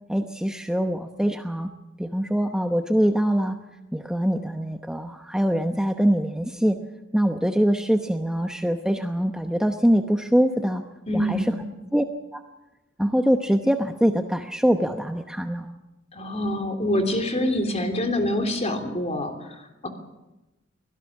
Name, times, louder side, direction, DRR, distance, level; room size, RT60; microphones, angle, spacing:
voice 1, 0.1-1.7 2.0-3.6 3.9-6.8 7.1-10.8 11.1-11.6 11.9-12.0 12.3-12.4 13.0-15.7, equal, 5° right, 5 dB, 0.9 m, -23 dB
voice 2, 11.1-11.6 16.1-19.9, left 1 dB, 35° left, 6 dB, 3.3 m, -26 dB
23.5 x 17.5 x 7.3 m, 1.0 s
head